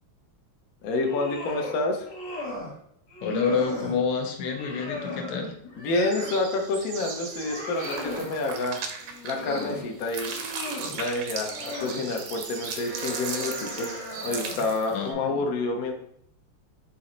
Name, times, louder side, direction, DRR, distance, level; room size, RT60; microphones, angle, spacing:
voice 1, 0.8-2.1 5.7-8.8 9.2-10.3 10.9-15.9, left 2 dB, 70° left, 3 dB, 0.8 m, -28 dB
sound 1, 0.9-1.8 2.0-2.7 3.1-4.0 4.4-6.5 6.9-8.3 9.0-9.9 10.2-11.0 11.5-12.0 12.6-14.7, left 1 dB, 55° left, 1.7 m, -37 dB
voice 2, 3.2-5.5 14.9-15.4, left 5 dB, 90° left, 4 dB, 1.7 m, -28 dB
sound 2, 5.9-15.1, right 5 dB, 70° right, 0.9 m, -42 dB
sound 3, 7.8-9.7 10.0-14.9, right 5 dB, 90° right, 1.6 m, -37 dB
4.2 x 2.9 x 3.8 m, 0.69 s
omnidirectional pair, 2.4 m